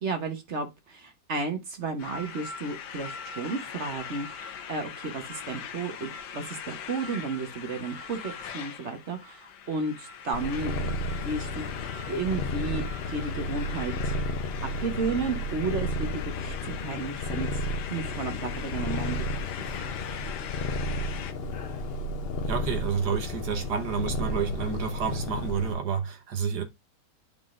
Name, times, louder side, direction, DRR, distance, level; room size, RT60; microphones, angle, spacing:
voice 1, 0.0-11.6 12.1-14.2 14.8-17.5 17.9-19.3 19.7-19.9, right 4 dB, 45° right, 1.3 m, -33 dB
sound 1, 2.0-21.3, left 7 dB, 80° left, 1.4 m, -41 dB
Purr, 10.3-25.7, left 1 dB, 55° left, 0.7 m, -32 dB
voice 2, 22.5-26.6, right 6 dB, 75° right, 1.6 m, -29 dB
11.0 x 3.7 x 2.5 m
omnidirectional pair, 1.8 m